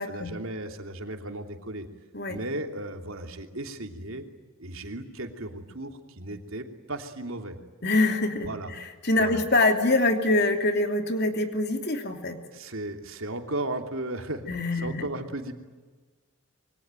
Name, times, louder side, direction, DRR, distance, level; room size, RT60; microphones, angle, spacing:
voice 1, 0.1-1.9 2.3-4.2 4.6-7.6 8.4-8.7 9.2-9.4 12.5-14.4 14.7-15.5, right 1 dB, 70° right, 5 dB, 3.0 m, -35 dB
voice 2, 7.8-12.4 14.5-15.1, left 2 dB, 50° left, 5 dB, 3.0 m, -25 dB
27.0 x 23.5 x 9.1 m, 1.3 s
head